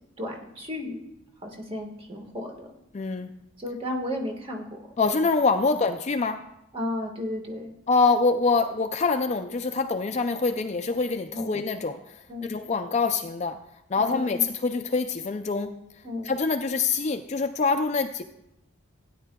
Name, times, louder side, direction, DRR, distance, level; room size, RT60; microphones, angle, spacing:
voice 1, 0.2-1.1 1.4-2.7 3.6-4.8 6.7-7.7 11.3-11.5 12.3-12.5 14.0-14.4 16.0-16.3, left 1 dB, 25° right, 2 dB, 1.5 m, -33 dB
voice 2, 2.9-3.3 5.0-6.5 7.9-13.6 13.9-15.8 16.2-18.2, left 4 dB, 30° left, 7 dB, 0.4 m, -25 dB
16.5 x 10.0 x 2.3 m, 0.83 s
head